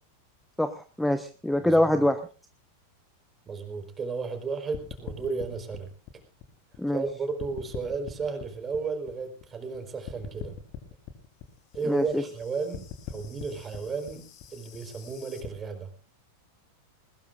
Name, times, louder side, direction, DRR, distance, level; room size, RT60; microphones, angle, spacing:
voice 1, 0.6-2.2 6.8-7.0 11.9-12.2, left 1 dB, 5° left, 11 dB, 1.1 m, -24 dB
voice 2, 1.6-2.0 3.5-5.9 6.9-10.5 11.7-15.9, right 4 dB, 20° right, 6 dB, 4.5 m, -33 dB
sound 1, 4.7-7.1 7.4-9.8 10.1-15.5, left 8 dB, 45° left, 3.5 m, -42 dB
21.5 x 20.5 x 2.6 m, 0.36 s
figure-of-eight pair, 90°, 0 cm